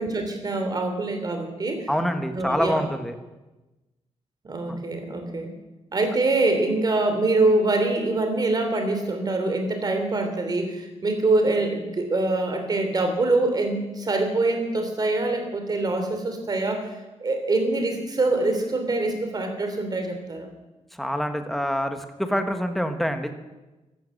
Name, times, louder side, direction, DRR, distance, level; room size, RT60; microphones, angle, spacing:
voice 1, 0.0-1.9 2.3-2.8 4.4-5.5 5.9-16.9 17.2-20.5, right 2 dB, 35° right, 6 dB, 3.1 m, -24 dB
voice 2, 1.9-3.1 4.7-4.8 21.0-23.3, equal, ahead, 7 dB, 1.4 m, -26 dB
15.0 x 12.0 x 7.8 m, 1.1 s
wide cardioid pair, 140°, 12 cm